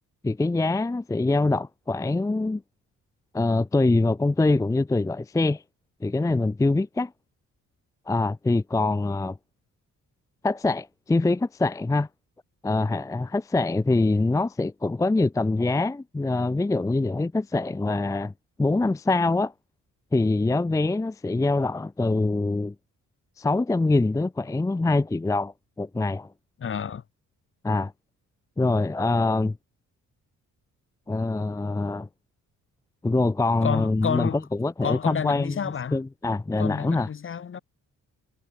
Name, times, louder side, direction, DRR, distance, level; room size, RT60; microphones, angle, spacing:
voice 1, 0.2-2.6 3.3-5.6 6.0-7.1 8.1-9.4 10.4-12.1 12.6-18.3 18.6-19.5 20.1-22.7 23.4-26.3 27.6-27.9 28.6-29.6 31.1-32.1 33.0-34.3 34.6-35.6 35.9-37.1, left 2 dB, 10° left, 0.5 m, -24 dB
voice 2, 26.6-27.0 33.6-34.4 34.8-36.0 36.6-37.6, left 7 dB, 40° left, 0.9 m, -30 dB
cardioid pair, 80°, 33 cm